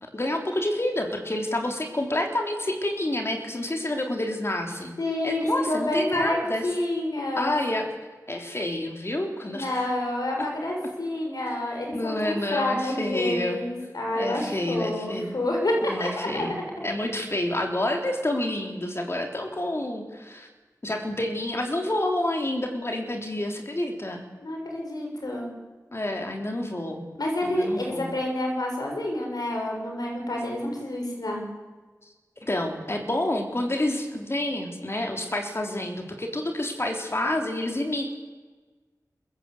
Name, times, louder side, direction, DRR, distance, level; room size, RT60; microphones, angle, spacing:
voice 1, 0.0-4.9 5.2-6.7 7.4-7.9 8.3-9.9 10.4-10.5 11.9-13.6 14.1-15.3 15.8-20.5 20.8-24.2 25.9-27.0 27.4-28.1 32.4-38.1, left 1 dB, 40° left, 3 dB, 3.3 m, -28 dB
voice 2, 5.0-7.5 9.5-16.6 24.4-25.5 27.1-31.4, left 1 dB, 75° left, 0 dB, 6.6 m, -28 dB
26.5 x 16.0 x 8.3 m, 1.3 s
cardioid pair, 45°, 7 cm